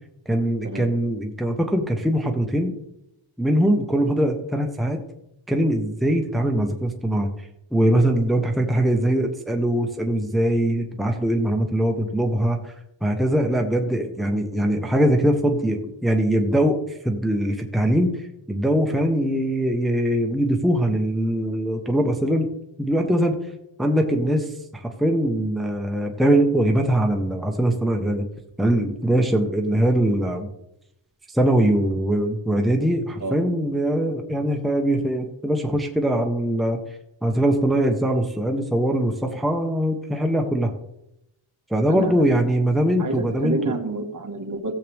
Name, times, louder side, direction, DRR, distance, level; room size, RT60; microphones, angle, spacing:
voice 1, 0.3-2.7 3.4-5.0 5.5-12.7 13.0-22.5 22.8-23.4 23.8-24.5 24.8-28.2 28.6-30.5 31.3-36.8 37.2-40.7 41.7-43.7, right 1 dB, ahead, 3 dB, 1.1 m, -22 dB
voice 2, 43.0-44.7, right 3 dB, 40° right, 4 dB, 1.7 m, -29 dB
16.0 x 7.7 x 3.5 m, 0.83 s
wide cardioid pair, 105°, 49 cm